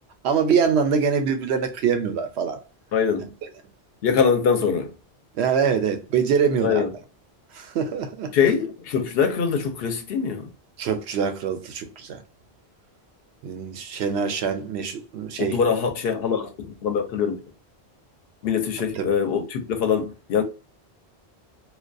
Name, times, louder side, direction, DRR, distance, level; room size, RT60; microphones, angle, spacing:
voice 1, 0.2-2.6 3.2-3.3 5.3-6.8 7.5-8.3 10.8-12.2 13.4-15.6 18.8-19.1, right 6 dB, 85° right, 0.8 m, -24 dB
voice 2, 2.9-3.3 4.0-4.9 6.6-6.9 8.3-10.5 15.4-17.4 18.4-20.4, left 6 dB, 70° left, 0.8 m, -23 dB
2.3 x 2.2 x 2.4 m
omnidirectional pair, 1.1 m